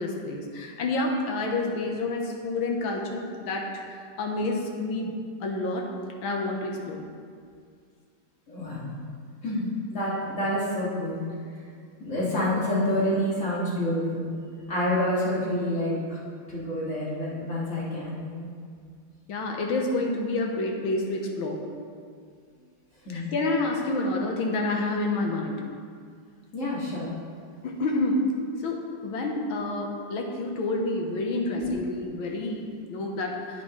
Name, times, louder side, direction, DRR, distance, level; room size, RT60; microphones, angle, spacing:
voice 1, 0.0-5.1 5.4-5.9 6.2-7.0 19.3-21.6 23.1-25.6 27.6-28.3 28.6-33.6, left 2 dB, 80° left, 1 dB, 1.8 m, -29 dB
voice 2, 8.5-9.0 9.4-11.2 12.0-14.4 14.7-16.2 16.5-18.5 23.0-23.3 26.5-27.1 31.6-31.8, left 1 dB, 35° left, -7 dB, 2.5 m, -28 dB
10.0 x 8.8 x 3.1 m, 2.1 s
omnidirectional pair, 2.2 m